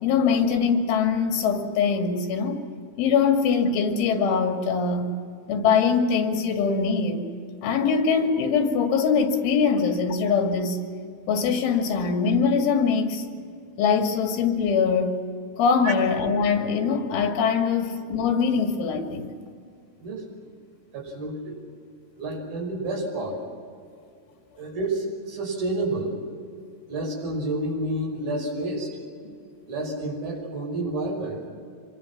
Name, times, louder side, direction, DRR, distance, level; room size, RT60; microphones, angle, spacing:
voice 1, 0.0-2.6 3.0-5.1 5.5-7.2 7.6-10.8 11.3-13.3 13.8-15.2 15.6-19.3, left 5 dB, 80° left, 3 dB, 4.7 m, -22 dB
voice 2, 20.9-21.6 22.2-23.4 24.6-26.2 26.9-29.0 29.7-31.4, right 2 dB, 50° right, -2 dB, 7.5 m, -29 dB
26.0 x 24.0 x 6.1 m, 2.3 s
omnidirectional pair, 5.5 m